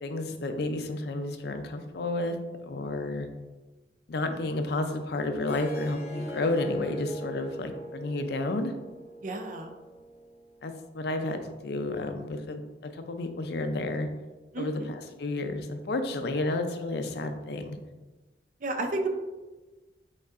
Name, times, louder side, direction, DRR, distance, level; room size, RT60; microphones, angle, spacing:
voice 1, 0.0-2.4 2.6-3.3 4.1-8.7 10.6-14.1 14.6-17.8, left 2 dB, 65° left, 7 dB, 0.4 m, -31 dB
Harp, 5.4-10.6, right 1 dB, 35° left, 0.9 m, -40 dB
voice 2, 9.2-9.7 14.5-14.9 18.6-19.1, right 2 dB, 50° right, 5 dB, 0.5 m, -32 dB
5.3 x 3.6 x 2.5 m, 1.2 s
head